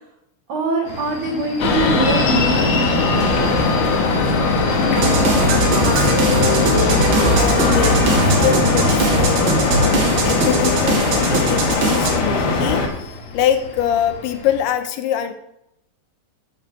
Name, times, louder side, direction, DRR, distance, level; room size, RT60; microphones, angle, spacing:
voice 1, 0.5-3.6, right 2 dB, 90° right, 0 dB, 1.5 m, -23 dB
sound 1, 0.8-14.6, left 2 dB, 45° left, 1.9 m, -35 dB
sound 2, 1.6-12.9, left 3 dB, 60° left, 2.3 m, -19 dB
voice 2, 4.8-6.7 7.3-12.9 13.3-15.3, left 10 dB, 80° left, 7 dB, 2.6 m, -24 dB
sound 3, 5.0-12.1, right 3 dB, 70° right, 3.2 m, -20 dB
10.5 x 4.6 x 6.3 m, 0.79 s
omnidirectional pair, 4.9 m